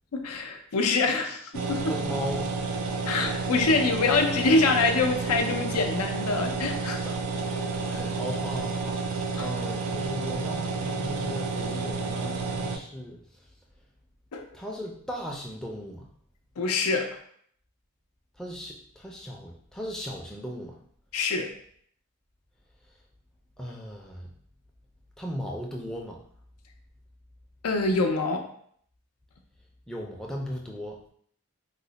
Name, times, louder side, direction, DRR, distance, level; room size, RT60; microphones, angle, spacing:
voice 1, 0.1-2.0 3.1-7.1 9.4-9.5 14.3-14.4 16.6-17.2 21.1-21.5 27.6-28.5, left 3 dB, 85° left, 5 dB, 0.5 m, -25 dB
sound 1, 1.5-12.8, right 4 dB, 85° right, 0.4 m, -30 dB
voice 2, 1.9-2.5 7.1-7.2 7.5-13.2 14.5-16.1 18.4-20.8 23.6-24.3 25.2-26.2 29.9-31.1, equal, 5° left, -2 dB, 0.4 m, -37 dB
3.1 x 2.1 x 3.9 m, 0.63 s
head